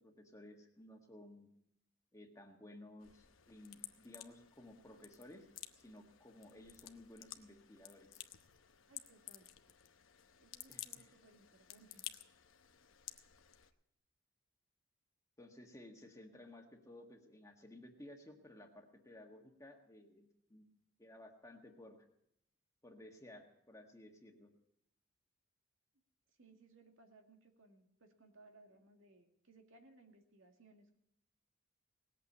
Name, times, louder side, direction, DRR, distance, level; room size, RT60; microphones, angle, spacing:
voice 1, 0.0-1.5 2.1-5.5 5.8-8.2 10.7-11.1 15.4-20.6 21.0-22.0 22.8-24.5, left 1 dB, 15° left, 2 dB, 1.6 m, -56 dB
sound 1, 3.0-13.7, left 12 dB, 80° left, 0.9 m, -54 dB
voice 2, 8.9-9.5 10.4-12.0 26.4-31.0, right 2 dB, 75° right, 3 dB, 2.2 m, -64 dB
19.0 x 8.4 x 8.3 m, 0.77 s
head